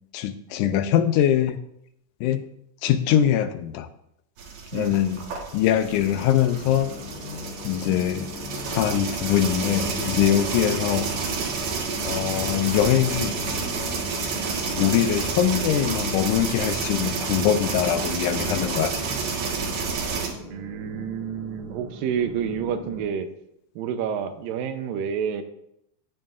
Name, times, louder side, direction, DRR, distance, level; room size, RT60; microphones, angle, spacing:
voice 1, 0.1-1.6 2.2-2.5 2.8-3.9 4.7-5.2 5.5-6.9 7.6-8.3 8.7-11.1 12.0-13.3 14.8-18.9, left 10 dB, 80° left, 10 dB, 1.9 m, -22 dB
sound 1, 4.4-20.3, right 5 dB, 60° right, 2.6 m, -30 dB
sound 2, 5.5-20.4, left 4 dB, 60° left, 1.5 m, -41 dB
sound 3, 6.5-23.1, left 3 dB, 15° right, 3.2 m, -42 dB
voice 2, 20.5-23.3 23.8-25.4, right 7 dB, 90° right, 8 dB, 2.5 m, -29 dB
15.5 x 7.1 x 2.5 m, 0.76 s
omnidirectional pair, 3.9 m